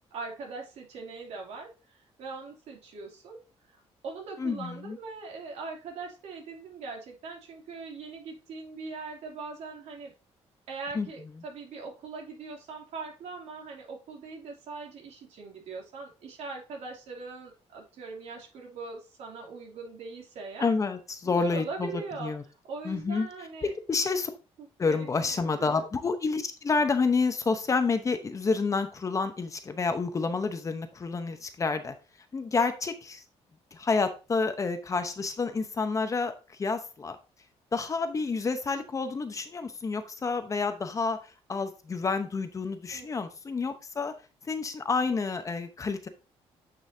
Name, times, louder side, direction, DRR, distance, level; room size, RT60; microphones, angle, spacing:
voice 1, 0.1-3.4 3.7-10.1 10.7-20.7 21.2-22.3 22.6-23.7 24.6-25.9 42.9-43.1, right 4 dB, 80° right, 0 dB, 2.8 m, -41 dB
voice 2, 4.4-5.0 10.9-11.1 20.6-22.4 22.8-23.3 23.9-24.3 24.8-31.9 32.3-33.2 33.7-36.3 36.6-37.2 37.7-41.2 41.5-44.1 44.5-46.1, left 4 dB, 30° left, 8 dB, 0.9 m, -29 dB
9.2 x 5.5 x 2.7 m, 0.31 s
cardioid pair, 130°, 11 cm